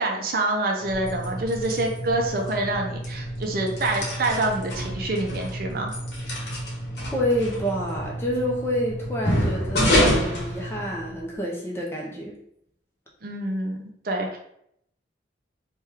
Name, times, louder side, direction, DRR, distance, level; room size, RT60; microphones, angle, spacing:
voice 1, 0.0-5.9 13.2-14.4, right 2 dB, 50° right, 2 dB, 0.5 m, -26 dB
sound 1, 0.8-11.3, equal, 60° left, 0.9 m, -28 dB
voice 2, 7.1-12.4, equal, 15° left, -3 dB, 0.5 m, -28 dB
3.3 x 2.3 x 2.9 m, 0.73 s
head